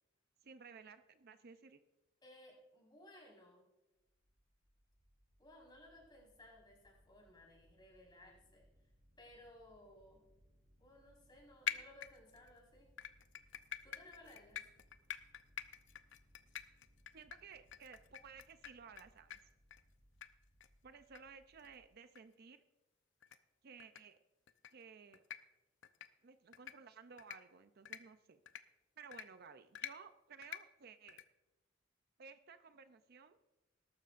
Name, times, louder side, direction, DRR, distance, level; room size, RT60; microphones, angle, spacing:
voice 1, 0.4-1.8 17.1-19.4 20.8-22.6 23.6-24.2 24.7-25.2 26.2-28.4 29.0-31.2 32.2-33.4, right 6 dB, 50° right, 10 dB, 0.5 m, -56 dB
voice 2, 2.2-3.7 5.4-8.9 9.2-10.3 10.8-12.9 13.8-14.6, left 1 dB, 25° left, -2 dB, 4.6 m, -60 dB
sound 1, 4.0-21.9, equal, 85° right, 5.0 m, -71 dB
sound 2, 11.7-12.5 13.0-19.0 19.3-19.4 19.7-19.8 20.2-20.3 20.6-20.7 21.1-21.2 21.6-21.7 22.1-22.2 23.2-23.4 23.8-24.0 24.5-24.7 25.1-25.4 25.8-26.1 26.5-26.7 27.2-27.4 27.8-28.0 28.5-28.6 29.1-29.2 29.7-29.9 30.4-30.6 31.1-31.2, left 10 dB, 65° left, 0.6 m, -45 dB
20.0 x 12.0 x 2.5 m, 1.0 s
head